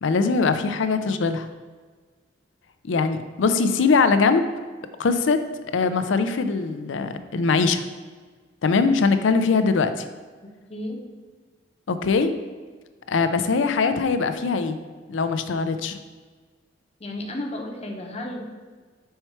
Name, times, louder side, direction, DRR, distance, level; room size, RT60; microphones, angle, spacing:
voice 1, 0.0-1.5 2.8-4.5 5.0-5.4 5.7-7.8 8.6-9.9 11.9-12.3 13.1-14.8 15.1-16.0, left 4 dB, 70° left, 10 dB, 0.5 m, -21 dB
voice 2, 10.4-11.0 17.0-18.5, left 1 dB, 35° left, 2 dB, 0.8 m, -34 dB
5.6 x 4.4 x 4.5 m, 1.4 s
head